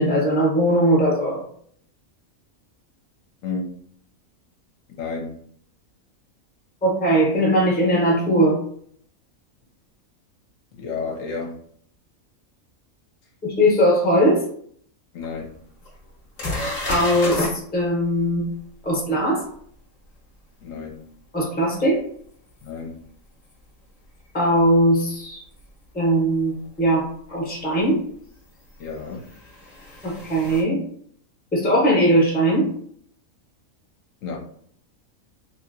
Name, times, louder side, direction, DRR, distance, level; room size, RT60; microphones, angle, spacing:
voice 1, 0.0-1.4 6.8-8.6 13.4-14.4 16.9-18.5 18.8-19.4 21.3-22.0 24.3-25.4 25.9-26.5 26.8-27.0 27.3-28.0 30.0-30.8 31.5-32.7, equal, 10° left, -3 dB, 0.7 m, -19 dB
voice 2, 5.0-5.4 10.8-11.5 15.1-15.5 20.6-21.0 22.6-22.9 28.8-29.3 34.2-34.4, left 4 dB, 70° left, 0 dB, 1.0 m, -31 dB
sound 1, 15.2-15.3 15.8-15.9 16.4-17.5 22.7-22.8 25.5-25.6 27.3-27.4 28.8-30.6, left 1 dB, 40° left, 0.9 m, -30 dB
3.1 x 2.7 x 2.6 m, 0.63 s
omnidirectional pair, 1.5 m